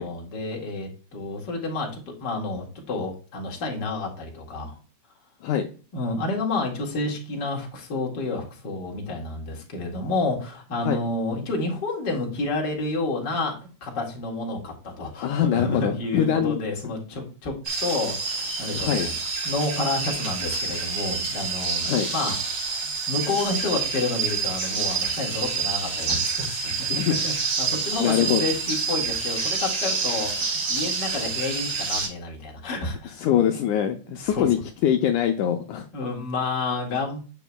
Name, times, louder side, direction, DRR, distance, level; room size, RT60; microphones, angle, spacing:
voice 1, 0.0-4.8 5.9-19.1 19.4-26.7 27.2-33.3 34.2-34.4 35.9-37.2, left 3 dB, 35° left, -1 dB, 2.2 m, -30 dB
voice 2, 15.2-16.6 18.7-19.1 21.8-22.1 26.9-27.2 28.0-28.4 33.2-35.9, left 9 dB, 80° left, 5 dB, 1.9 m, -23 dB
sound 1, 17.7-32.1, right 5 dB, 50° right, 4.0 m, -28 dB
9.1 x 6.9 x 2.3 m, 0.36 s
omnidirectional pair, 3.9 m